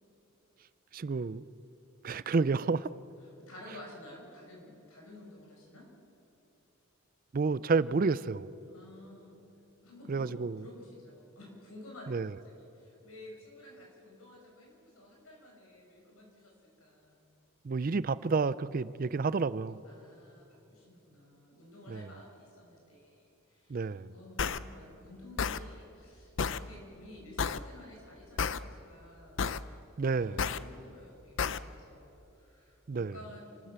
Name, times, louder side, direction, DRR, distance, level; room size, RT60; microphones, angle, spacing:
voice 1, 0.9-1.5 2.0-2.9 7.3-8.5 10.1-10.6 12.1-12.3 17.6-19.8 21.9-22.0 23.7-24.1 30.0-30.4 32.9-33.1, right 4 dB, 40° right, 0.4 m, -30 dB
voice 2, 3.2-5.9 8.7-9.4 9.8-16.5 16.8-17.2 19.8-29.5 30.1-33.7, left 1 dB, 85° left, 6.0 m, -52 dB
sound 1, 24.4-24.6 25.4-25.6 26.4-26.6 27.4-27.6 28.4-28.6 29.4-29.6 30.4-30.6 31.4-31.6, left 6 dB, 60° left, 0.6 m, -30 dB
28.0 x 13.0 x 8.1 m
head